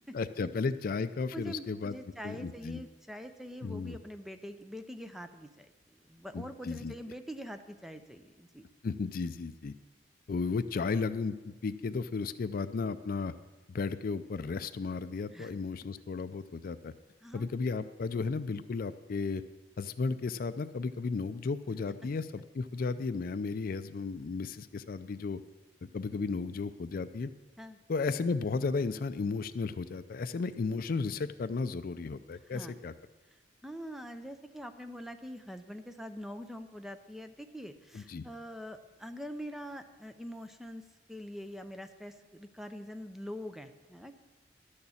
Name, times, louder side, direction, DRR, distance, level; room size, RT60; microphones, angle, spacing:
voice 1, 0.1-1.9 2.2-2.8 3.6-4.0 6.3-6.9 8.8-9.7 10.3-13.3 13.7-16.9 17.3-19.4 19.8-25.4 25.9-27.3 27.9-32.9 37.9-38.2, left 4 dB, 55° left, 12 dB, 0.4 m, -34 dB
voice 2, 1.3-5.7 6.1-8.7 15.3-15.5 17.2-17.5 27.6-27.8 32.5-32.8 33.6-44.1, equal, ahead, 8 dB, 0.6 m, -44 dB
12.0 x 6.5 x 7.1 m, 1.2 s
head